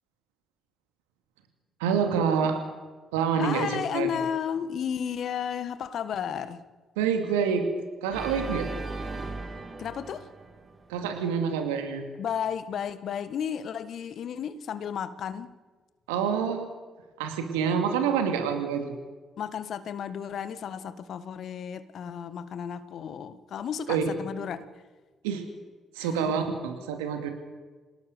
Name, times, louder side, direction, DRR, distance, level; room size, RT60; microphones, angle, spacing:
voice 1, 1.8-2.6 3.1-4.2 7.0-7.7 8.0-8.7 10.9-12.0 16.1-16.7 17.2-18.9 23.9-24.1 25.2-25.5 25.9-27.3, right 6 dB, 80° right, 2.6 m, -27 dB
voice 2, 3.4-6.6 9.8-10.3 12.2-15.6 19.4-24.6 26.0-26.3, left 8 dB, 60° left, 1.6 m, -33 dB
Organ, 8.1-11.2, right 3 dB, 35° right, 3.9 m, -37 dB
27.5 x 18.5 x 6.8 m
hypercardioid pair, 45°, 0 cm